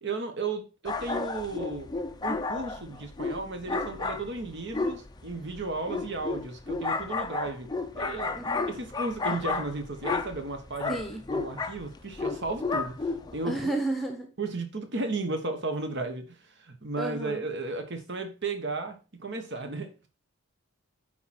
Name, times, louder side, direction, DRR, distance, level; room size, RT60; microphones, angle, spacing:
voice 1, 0.0-1.9 2.2-7.7 8.0-8.4 8.7-11.0 11.3-13.7 14.4-20.1, right 3 dB, 50° right, 1.4 m, -34 dB
sound 1, 0.8-13.4, left 3 dB, 20° left, 0.5 m, -33 dB
voice 2, 8.4-8.7 10.9-11.2 13.4-14.3 17.0-17.5, right 2 dB, ahead, 1.0 m, -32 dB
9.4 x 4.5 x 4.3 m
head